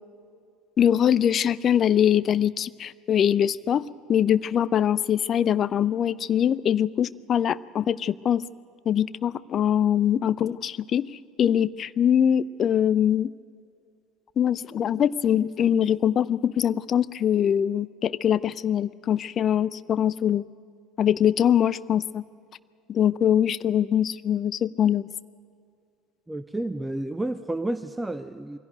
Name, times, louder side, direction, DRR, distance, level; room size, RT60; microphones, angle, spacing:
voice 1, 0.8-8.4 8.9-11.1 11.4-13.3 14.4-20.4 21.0-22.2 22.9-25.1, left 9 dB, 40° left, 18 dB, 0.5 m, -23 dB
voice 2, 26.3-28.6, right 1 dB, 10° right, 12 dB, 0.7 m, -30 dB
23.0 x 16.5 x 9.1 m, 2.3 s
figure-of-eight pair, 65°, 0 cm